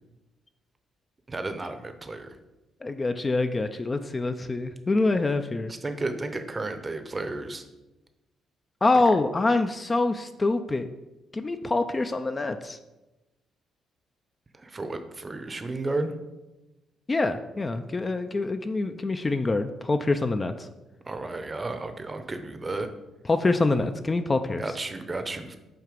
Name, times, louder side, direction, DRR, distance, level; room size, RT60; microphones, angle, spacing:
voice 1, 1.3-2.4 5.7-7.6 9.1-9.2 14.5-16.1 21.1-22.9 24.6-25.6, right 2 dB, 25° right, 8 dB, 0.7 m, -33 dB
voice 2, 2.8-5.7 8.8-10.9 11.3-12.8 17.1-20.7 23.3-24.6, left 3 dB, 25° left, 8 dB, 0.4 m, -25 dB
7.7 x 2.8 x 5.1 m, 1.0 s
cardioid pair, 90°, 0 cm